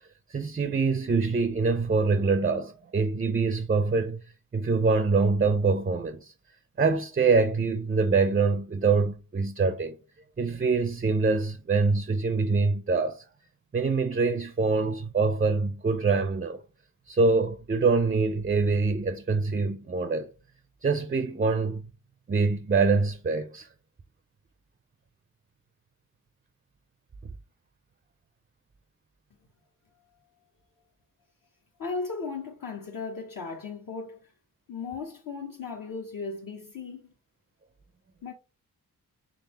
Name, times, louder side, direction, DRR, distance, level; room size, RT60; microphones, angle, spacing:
voice 1, 0.3-4.2 4.5-6.3 6.8-10.0 10.4-13.2 13.7-16.6 17.1-20.3 20.8-21.9 22.3-23.7, right 4 dB, 25° right, 0.4 m, -25 dB
voice 2, 31.8-34.3 34.7-37.1 38.2-38.3, left 4 dB, 55° left, 0.9 m, -36 dB
3.8 x 3.4 x 2.9 m
cardioid pair, 75°, 39 cm